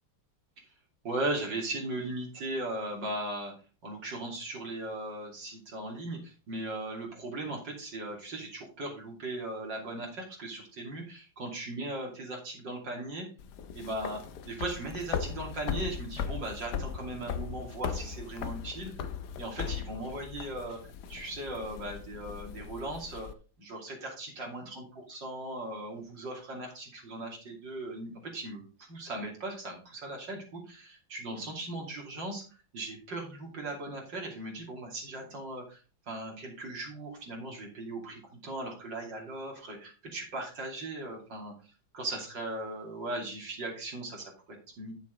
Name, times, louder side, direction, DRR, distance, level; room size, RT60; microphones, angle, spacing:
voice 1, 1.0-3.5 3.8-13.3 13.7-18.9 19.4-20.8 21.1-23.3 23.6-28.6 28.9-32.4 32.7-35.8 36.1-41.5 41.9-44.9, right 2 dB, 65° right, 0 dB, 3.3 m, -38 dB
sound 1, 13.4-23.3, left 7 dB, 65° left, 1.3 m, -38 dB
9.2 x 7.1 x 3.8 m, 0.34 s
omnidirectional pair, 2.1 m